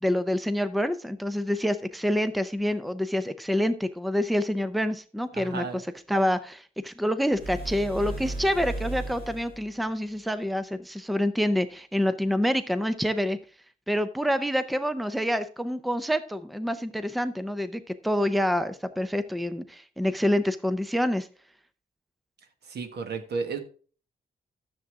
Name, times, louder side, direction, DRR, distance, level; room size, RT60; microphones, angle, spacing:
voice 1, 0.0-5.8 6.1-13.4 13.9-21.3, equal, ahead, 12 dB, 0.6 m, -27 dB
voice 2, 5.3-5.8 22.6-23.6, right 4 dB, 80° right, 7 dB, 1.8 m, -33 dB
sound 1, 7.3-9.7, right 2 dB, 35° right, 4.8 m, -35 dB
13.0 x 7.3 x 3.6 m, 0.40 s
wide cardioid pair, 165°, 17 cm